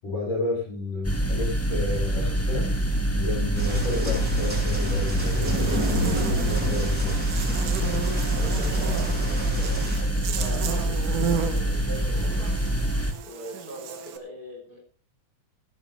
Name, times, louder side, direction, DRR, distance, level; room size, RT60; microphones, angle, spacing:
voice 1, 0.0-2.7 3.1-7.1, left 3 dB, 85° left, -1 dB, 9.7 m, -31 dB
sound 1, 1.0-13.1, right 1 dB, 10° left, 0.7 m, -26 dB
sound 2, 3.5-10.0, right 1 dB, 25° right, 6.2 m, -31 dB
Buzz, 5.1-14.2, right 7 dB, 80° right, 3.2 m, -34 dB
voice 2, 8.3-12.8 13.2-14.8, right 1 dB, 30° left, -1 dB, 4.2 m, -41 dB
16.0 x 15.0 x 3.3 m, 0.37 s
omnidirectional pair, 3.6 m